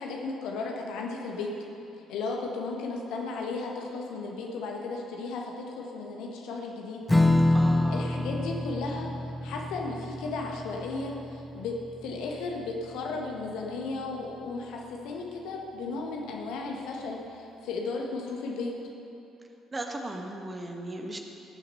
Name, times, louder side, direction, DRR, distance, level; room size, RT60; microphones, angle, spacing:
voice 1, 0.0-1.5 2.1-7.0 7.9-9.1 9.4-11.7 12.0-18.7, left 3 dB, 60° left, 0 dB, 1.5 m, -35 dB
Strum, 7.1-13.9, left 1 dB, 10° left, 0.6 m, -28 dB
voice 2, 7.5-8.0 19.7-21.2, right 1 dB, 25° right, 3 dB, 1.4 m, -36 dB
18.5 x 7.3 x 5.5 m, 2.8 s
figure-of-eight pair, 45°, 0 cm